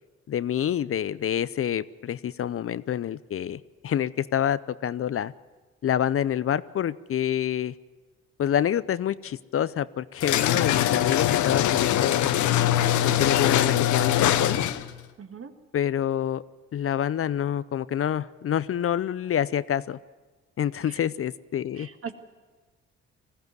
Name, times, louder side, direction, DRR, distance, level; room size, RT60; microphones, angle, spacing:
voice 1, 0.3-5.3 5.8-7.7 8.4-12.5 13.0-14.6 15.7-16.4 16.7-20.0 20.6-21.9, left 10 dB, 50° left, 17 dB, 0.6 m, -27 dB
sound 1, 10.2-15.0, left 12 dB, 75° left, 0.8 m, -22 dB
voice 2, 15.2-15.5 20.8-21.0 21.8-22.1, right 6 dB, 50° right, 7 dB, 1.8 m, -40 dB
20.0 x 15.0 x 9.4 m, 1.3 s
supercardioid pair, 60°, 30 cm